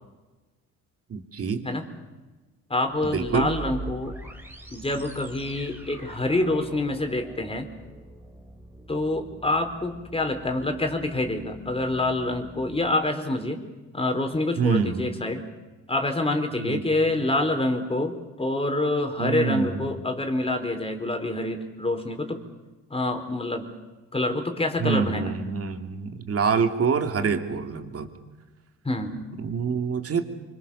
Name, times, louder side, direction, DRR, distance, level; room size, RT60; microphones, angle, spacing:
voice 1, 1.1-1.6 3.0-3.5 14.6-15.2 16.6-16.8 19.2-19.9 24.8-28.1 29.4-30.2, right 5 dB, 50° right, 6 dB, 3.0 m, -26 dB
voice 2, 2.7-4.1 4.7-7.7 8.9-13.6 13.9-15.4 15.9-22.4 22.9-23.7 24.1-25.3 28.8-29.2, left 2 dB, 20° left, 6 dB, 4.3 m, -26 dB
sound 1, 2.9-12.9, right 2 dB, 5° right, 4.4 m, -43 dB
26.0 x 25.5 x 7.2 m, 1.2 s
cardioid pair, 90°, 30 cm